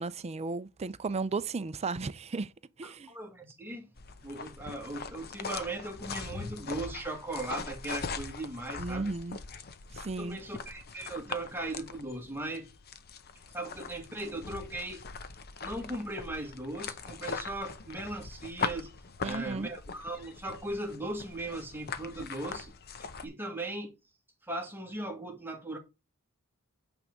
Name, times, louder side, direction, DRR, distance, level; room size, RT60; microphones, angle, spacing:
voice 1, 0.0-2.5 2.8-3.1 8.8-9.4 9.9-10.4 19.2-19.7, right 3 dB, 30° right, 0.4 m, -34 dB
voice 2, 2.8-3.9 4.2-9.1 10.2-12.7 13.5-15.0 15.6-18.9 19.2-22.7 23.0-24.0 24.4-25.8, right 2 dB, 10° right, 1.7 m, -38 dB
sound 1, 4.0-23.3, left 5 dB, 45° left, 0.8 m, -41 dB
8.8 x 3.5 x 5.2 m
head